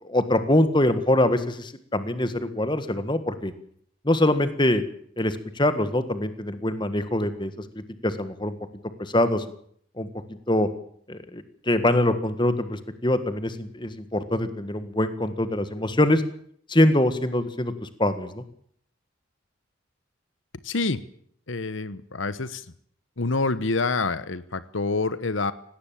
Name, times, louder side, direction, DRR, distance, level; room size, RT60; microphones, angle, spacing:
voice 1, 0.0-3.5 4.0-4.8 5.2-8.5 9.0-9.4 10.0-10.1 10.5-10.7 11.1-16.2 16.7-18.4, left 1 dB, 25° left, 11 dB, 1.7 m, -24 dB
voice 2, 20.6-21.0 21.5-22.6 23.2-25.5, left 3 dB, 75° left, 15 dB, 1.1 m, -27 dB
18.5 x 18.0 x 8.8 m, 0.63 s
head